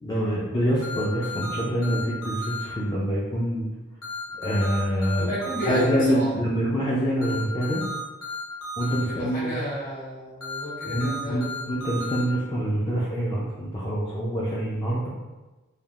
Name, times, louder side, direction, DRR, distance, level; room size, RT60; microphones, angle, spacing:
voice 1, 0.0-3.7 4.4-5.3 5.6-7.8 8.8-9.5 10.9-15.1, equal, 20° left, -6 dB, 0.3 m, -26 dB
sound 1, 0.8-2.6 4.0-5.8 7.2-9.0 10.4-12.2, left 2 dB, 85° left, 0.8 m, -34 dB
voice 2, 5.2-6.3 9.0-11.5, equal, 45° left, -9 dB, 1.4 m, -31 dB
3.3 x 2.3 x 2.3 m, 1.1 s
head